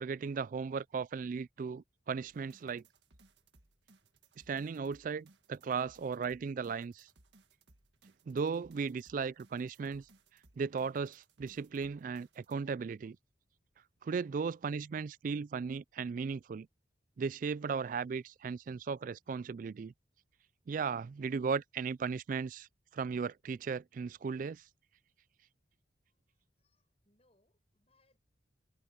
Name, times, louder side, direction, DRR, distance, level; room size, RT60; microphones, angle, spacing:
voice 1, 0.0-2.8 4.5-7.1 8.3-10.1 10.6-13.2 14.0-16.7 17.2-19.9 20.7-22.7 22.9-24.6, right 5 dB, 45° right, 0.3 m, -36 dB
sound 1, 2.3-12.5, right 2 dB, 70° right, 2.0 m, -66 dB
voice 2, 26.1-28.2, left 2 dB, 35° left, 7.7 m, -76 dB
head